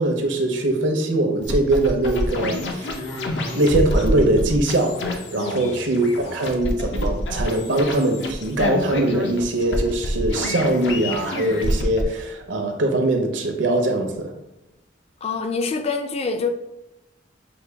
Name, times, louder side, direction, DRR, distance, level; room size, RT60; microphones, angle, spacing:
voice 1, 0.0-2.9 3.5-14.3, right 1 dB, 85° right, 4 dB, 0.7 m, -22 dB
sound 1, 1.4-12.0, left 1 dB, 70° left, 0.6 m, -27 dB
voice 2, 5.4-5.7 15.2-16.5, left 4 dB, 35° left, 6 dB, 0.4 m, -26 dB
5.9 x 2.2 x 3.3 m, 0.95 s
head